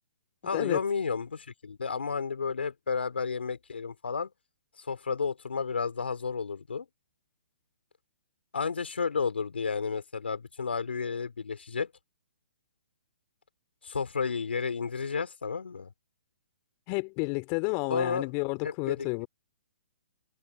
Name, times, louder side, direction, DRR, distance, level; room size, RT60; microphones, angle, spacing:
voice 1, 0.4-4.3 4.8-6.9 8.5-11.9 13.8-15.9 17.9-18.2 18.6-19.1, left 5 dB, 75° left, 3.6 m, -32 dB
voice 2, 16.9-19.3, left 34 dB, 35° left, 3.9 m, -31 dB
figure-of-eight pair, 130°, 6 cm